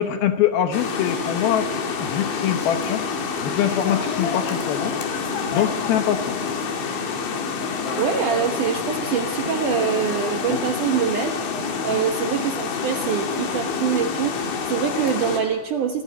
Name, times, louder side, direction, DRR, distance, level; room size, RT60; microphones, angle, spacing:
voice 1, 0.0-1.7 2.0-3.0 3.4-4.9 5.5-6.4 10.5-10.6 11.9-12.0, left 10 dB, 70° left, 7 dB, 2.5 m, -23 dB
sound 1, 0.7-15.4, left 5 dB, 85° left, 5.1 m, -27 dB
voice 2, 8.0-11.3 11.8-16.0, right 7 dB, 70° right, 4 dB, 2.1 m, -24 dB
24.5 x 16.0 x 9.3 m, 1.3 s
omnidirectional pair, 5.1 m